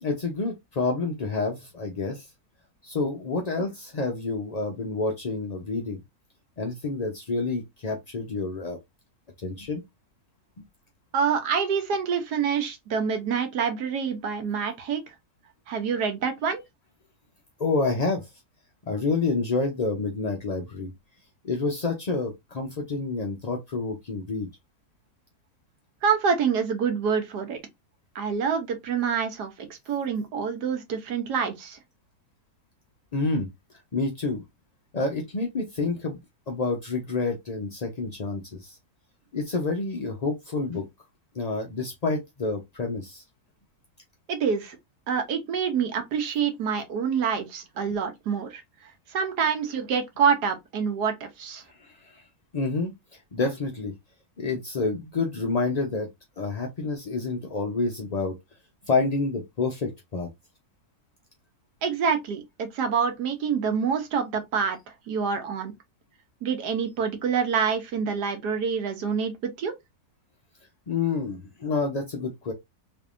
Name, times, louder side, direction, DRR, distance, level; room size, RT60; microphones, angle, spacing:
voice 1, 0.0-2.3 2.8-6.0 6.6-8.8 9.4-9.8 17.6-18.3 18.9-20.9 21.4-24.5 33.1-33.5 33.9-34.4 34.9-36.2 36.5-38.8 39.3-40.9 41.3-43.2 51.7-52.2 52.5-52.9 53.3-53.9 54.4-56.1 56.4-58.3 58.8-60.3 70.9-72.5, left 3 dB, 55° left, 0.4 m, -28 dB
voice 2, 11.1-15.0 15.7-16.6 26.0-27.6 28.1-31.8 44.3-44.8 45.1-48.6 49.1-51.6 61.8-64.8 65.1-65.7 66.4-69.7, right 6 dB, 90° right, 1.5 m, -26 dB
3.5 x 3.2 x 2.5 m
omnidirectional pair, 1.7 m